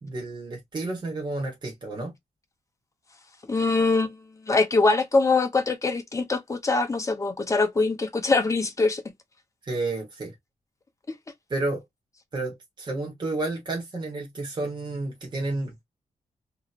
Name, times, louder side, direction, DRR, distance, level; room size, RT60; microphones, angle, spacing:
voice 1, 0.0-2.1 9.6-10.3 11.5-11.8 12.3-15.8, right 2 dB, 35° right, 1.3 m, -31 dB
voice 2, 3.5-4.2 4.5-9.0, left 3 dB, 25° left, 0.7 m, -23 dB
3.0 x 2.8 x 2.5 m
wide cardioid pair, 140°, 13 cm